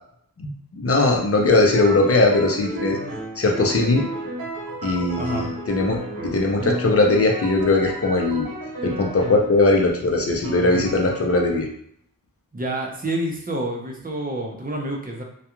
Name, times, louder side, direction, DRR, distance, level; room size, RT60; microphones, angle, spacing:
voice 1, 0.4-3.0 3.4-4.1 4.8-8.5 8.8-11.7, left 2 dB, 40° left, 1 dB, 0.6 m, -20 dB
sound 1, 1.7-9.6 10.4-11.5, right 1 dB, 85° right, 1.0 m, -32 dB
voice 2, 5.2-5.5 12.5-15.2, right 1 dB, 25° right, -1 dB, 0.6 m, -28 dB
2.4 x 2.2 x 2.9 m, 0.68 s
wide cardioid pair, 80°, 34 cm